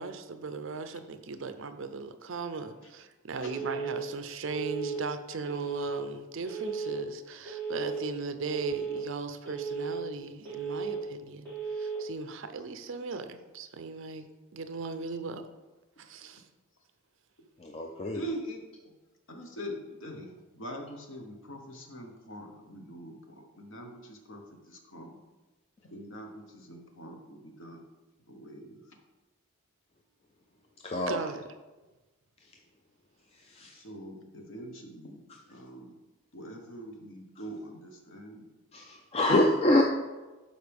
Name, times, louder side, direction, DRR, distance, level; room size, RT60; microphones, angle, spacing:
voice 1, 0.0-15.5 16.0-16.5 31.1-31.4, right 4 dB, 60° right, 9 dB, 0.5 m, -38 dB
Telephone, 3.5-4.0 4.5-5.0 5.5-6.0 6.5-7.0 7.5-8.0 8.5-9.0 9.5-10.0 10.5-11.0 11.5-12.0, right 5 dB, 10° left, 2.3 m, -35 dB
voice 2, 17.6-18.2 30.8-31.2 33.5-33.8 38.7-39.8, left 1 dB, 25° left, 2 dB, 0.4 m, -26 dB
voice 3, 18.1-19.0 19.3-25.2 25.9-27.8 28.3-29.0 33.7-36.0 36.3-38.5, equal, 60° left, 3 dB, 1.1 m, -43 dB
11.5 x 4.5 x 3.5 m, 1.2 s
head